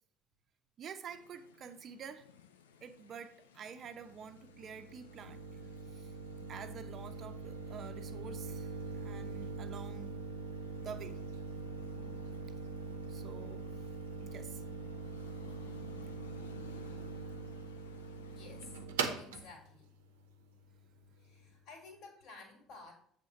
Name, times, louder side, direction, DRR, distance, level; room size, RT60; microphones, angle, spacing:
voice 1, 0.8-2.3 2.8-5.4 5.9-6.1 6.5-10.1 10.8-11.2 13.1-13.6 14.2-14.6, right 6 dB, 45° right, 0.8 m, -48 dB
sound 1, 1.1-18.9, left 8 dB, 85° left, 0.5 m, -58 dB
sound 2, 3.9-21.5, right 4 dB, 80° right, 0.8 m, -43 dB
voice 2, 18.4-18.8 19.2-19.9 21.2-22.9, left 4 dB, 55° left, 2.5 m, -53 dB
7.7 x 3.7 x 5.8 m
hypercardioid pair, 60°, 0 cm